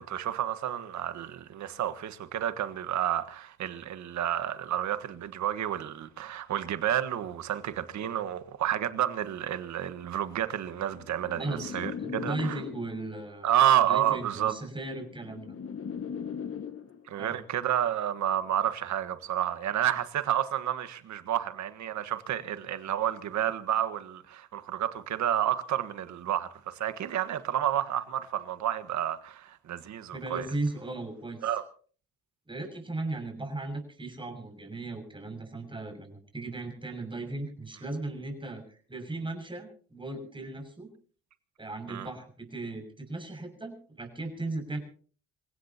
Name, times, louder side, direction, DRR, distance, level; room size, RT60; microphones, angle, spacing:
voice 1, 0.0-12.6 13.4-14.5 17.1-30.5 31.4-31.6 41.9-42.1, right 11 dB, 70° right, 1.6 m, -30 dB
sound 1, 10.8-13.2 14.2-17.2, left 7 dB, 45° left, 1.6 m, -39 dB
voice 2, 11.4-13.5 13.9-15.5 17.2-17.4 30.1-31.5 32.5-40.9 41.6-44.8, right 2 dB, 15° right, 6.7 m, -37 dB
27.5 x 16.5 x 2.9 m
cardioid pair, 90°, 30 cm